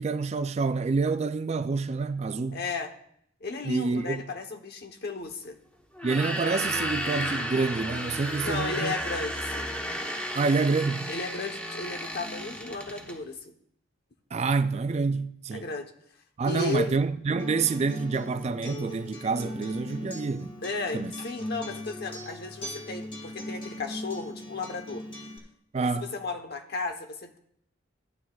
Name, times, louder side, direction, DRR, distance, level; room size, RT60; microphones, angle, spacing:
voice 1, 0.0-2.6 3.6-4.2 6.0-8.9 10.3-11.1 14.3-15.7 16.4-20.5 20.9-21.1 25.7-26.1, right 4 dB, 35° right, 0.3 m, -27 dB
voice 2, 2.5-2.9 3.4-5.6 8.4-9.7 11.1-13.5 15.5-15.9 16.4-17.0 20.6-25.0 26.0-27.4, left 3 dB, 55° left, 0.9 m, -34 dB
sound 1, 5.9-13.2, equal, 5° left, 1.0 m, -33 dB
Acoustic guitar, 17.4-25.4, left 1 dB, 25° left, 1.5 m, -39 dB
14.0 x 9.8 x 2.3 m
head